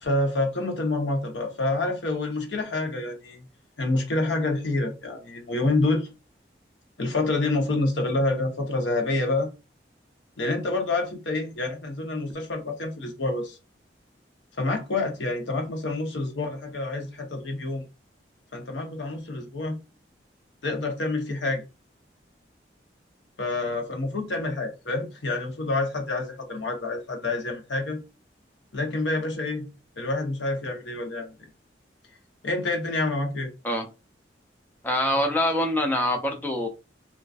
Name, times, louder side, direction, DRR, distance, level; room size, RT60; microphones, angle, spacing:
voice 1, 0.0-3.5 3.8-6.1 7.0-9.5 10.4-13.6 14.6-17.8 18.5-19.8 20.6-21.6 23.4-28.0 28.7-29.7 30.0-31.5 32.4-33.5, left 2 dB, 90° left, 0.7 m, -27 dB
voice 2, 34.8-36.7, left 1 dB, 10° left, 0.3 m, -24 dB
2.4 x 2.2 x 2.3 m
head